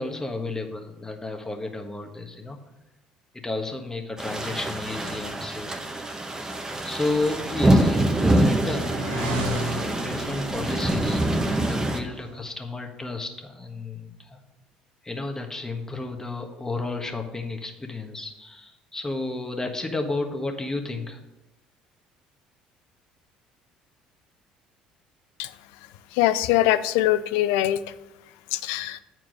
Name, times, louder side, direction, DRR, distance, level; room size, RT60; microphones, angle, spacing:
voice 1, 0.0-2.6 3.4-5.7 6.8-14.4 15.0-21.2, left 2 dB, 15° left, 4 dB, 1.5 m, -32 dB
sound 1, 4.2-12.0, right 1 dB, 20° right, 1.1 m, -25 dB
sound 2, 8.3-12.4, right 1 dB, 85° right, 1.9 m, -35 dB
voice 2, 26.1-27.8 28.5-29.0, left 14 dB, 80° left, 14 dB, 0.4 m, -22 dB
8.8 x 4.6 x 6.3 m, 0.95 s
hypercardioid pair, 70°, 3 cm